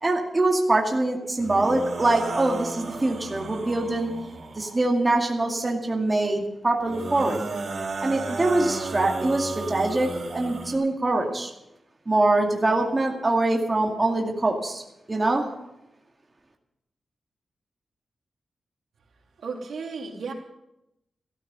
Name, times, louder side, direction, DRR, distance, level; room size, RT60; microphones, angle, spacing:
voice 1, 0.0-4.1 4.6-7.5 8.0-11.5 12.1-14.8 15.1-15.5, right 2 dB, 25° right, 1 dB, 2.4 m, -24 dB
sound 1, 1.4-4.8 6.8-10.7, right 3 dB, 60° right, 3.6 m, -34 dB
voice 2, 19.4-20.3, right 4 dB, 90° right, 0 dB, 3.1 m, -34 dB
15.5 x 14.0 x 5.6 m, 0.87 s
wide cardioid pair, 110°, 0 cm